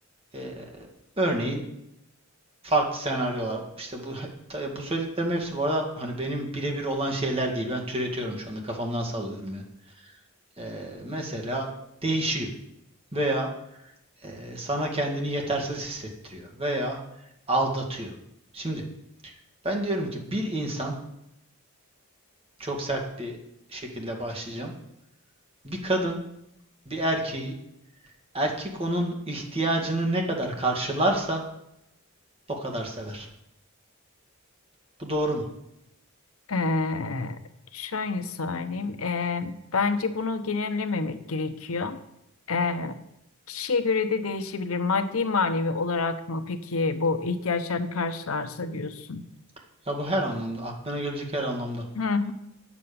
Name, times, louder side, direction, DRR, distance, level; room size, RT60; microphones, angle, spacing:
voice 1, 0.3-0.9 1.2-1.6 2.6-9.6 10.0-10.1 10.6-11.7 12.0-12.5 13.1-13.5 14.2-17.0 17.5-18.1 18.5-18.8 19.2-19.3 19.6-20.9 22.6-23.4 23.7-24.7 25.6-26.2 26.9-27.5 28.3-31.4 32.5-33.3 35.0-35.4 49.9-51.8, right 1 dB, 25° right, 1 dB, 2.0 m, -29 dB
voice 2, 36.5-37.4 37.7-42.0 42.5-43.0 43.5-49.2 52.0-52.3, left 4 dB, 75° left, 10 dB, 0.9 m, -28 dB
9.7 x 7.4 x 6.9 m, 0.81 s
head